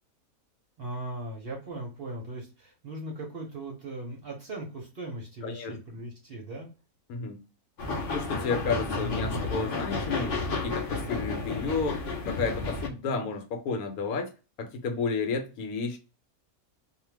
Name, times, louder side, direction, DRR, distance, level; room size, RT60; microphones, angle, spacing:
voice 1, 0.8-6.7 8.9-9.7, right 1 dB, 50° right, 0.8 m, -38 dB
voice 2, 5.4-5.7 7.1-7.4 8.1-14.3 14.6-16.0, left 4 dB, 75° left, 1.1 m, -31 dB
sound 1, 7.8-12.9, left 3 dB, 55° left, 0.6 m, -32 dB
2.5 x 2.2 x 3.1 m
omnidirectional pair, 1.5 m